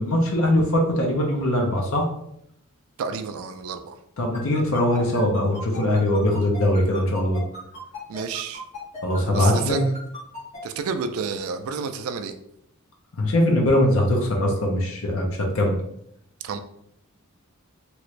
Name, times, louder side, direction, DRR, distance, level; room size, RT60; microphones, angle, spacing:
voice 1, 0.0-2.1 4.2-7.4 9.0-9.8 13.2-15.8, left 1 dB, 65° left, 0 dB, 0.7 m, -21 dB
voice 2, 3.0-4.0 8.1-8.6 9.3-9.8 10.6-12.4 16.4-16.6, right 5 dB, 70° right, 8 dB, 0.3 m, -30 dB
sound 1, 4.3-10.6, left 2 dB, 30° left, 1.2 m, -38 dB
3.0 x 2.5 x 3.1 m, 0.74 s
head